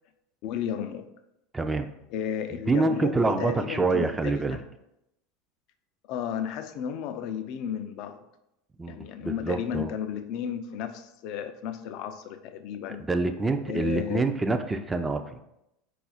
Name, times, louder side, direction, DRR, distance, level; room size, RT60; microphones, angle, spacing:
voice 1, 0.4-1.1 2.1-4.6 6.1-8.2 8.9-13.0 13.7-14.2, left 9 dB, 55° left, 9 dB, 0.4 m, -33 dB
voice 2, 1.5-1.9 2.7-4.6 8.8-9.9 13.0-15.4, right 3 dB, 15° right, 8 dB, 0.4 m, -26 dB
4.0 x 2.4 x 4.0 m, 0.85 s
hypercardioid pair, 85°, 0 cm